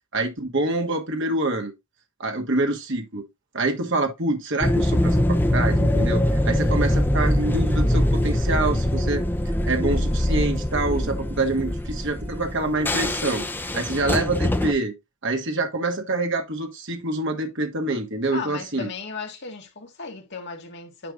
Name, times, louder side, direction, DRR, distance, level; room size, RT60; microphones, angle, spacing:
voice 1, 0.1-1.7 2.2-3.3 3.5-9.2 9.7-13.4 13.7-14.9 15.2-18.9, right 2 dB, 60° right, 1.6 m, -26 dB
sound 1, 4.6-14.7, left 1 dB, 10° left, 0.7 m, -23 dB
voice 2, 18.3-21.1, left 4 dB, 50° left, 2.2 m, -36 dB
10.0 x 3.4 x 3.8 m
head